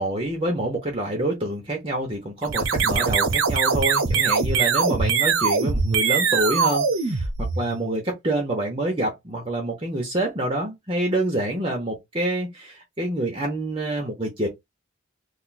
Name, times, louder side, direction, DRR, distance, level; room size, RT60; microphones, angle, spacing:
voice 1, 0.0-7.3 7.6-14.5, right 1 dB, 25° right, 0.7 m, -27 dB
sound 1, 2.4-7.9, right 5 dB, 90° right, 0.7 m, -22 dB
2.6 x 2.3 x 3.9 m
head